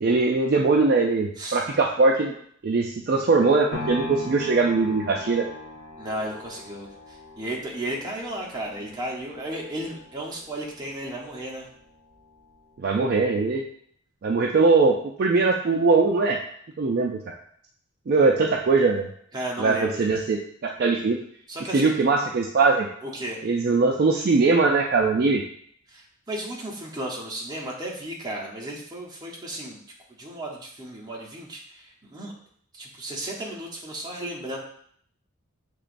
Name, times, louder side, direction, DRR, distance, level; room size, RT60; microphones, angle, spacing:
voice 1, 0.0-2.3 2.6-5.5 12.8-13.6 14.2-16.4 16.8-17.3 18.1-19.1 19.6-21.2 21.7-22.9 23.4-25.4, right 3 dB, 45° right, 1 dB, 0.3 m, -21 dB
sound 1, 3.7-11.8 12.3-12.4, left 1 dB, 45° left, 1.1 m, -40 dB
voice 2, 6.0-11.7 19.3-20.0 21.5-21.9 23.0-23.4 25.9-29.8 30.2-32.3 32.7-34.6, right 1 dB, 20° right, -2 dB, 0.8 m, -34 dB
6.5 x 3.0 x 2.5 m, 0.63 s
head